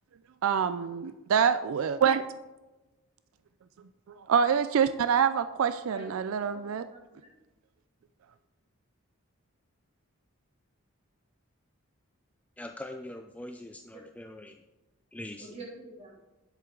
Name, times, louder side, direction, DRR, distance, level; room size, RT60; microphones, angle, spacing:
voice 1, 0.4-2.2 4.3-6.8, right 7 dB, 75° right, 13 dB, 0.4 m, -26 dB
voice 2, 5.9-7.3 13.8-14.0 15.4-16.1, right 2 dB, 30° right, -4 dB, 2.9 m, -47 dB
voice 3, 12.6-14.6 15.1-15.5, left 1 dB, 5° left, 5 dB, 0.3 m, -42 dB
9.8 x 7.9 x 3.8 m, 1.1 s
head